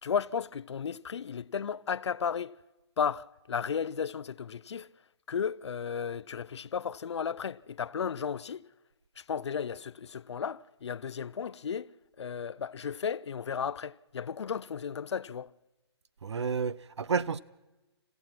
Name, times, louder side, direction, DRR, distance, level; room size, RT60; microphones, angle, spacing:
voice 1, 0.0-2.5 3.0-4.9 5.3-8.6 9.2-15.5, left 7 dB, 75° left, 0.6 m, -34 dB
voice 2, 16.2-17.4, right 5 dB, 80° right, 0.8 m, -30 dB
29.5 x 15.5 x 6.0 m
hypercardioid pair, 160°, 14 cm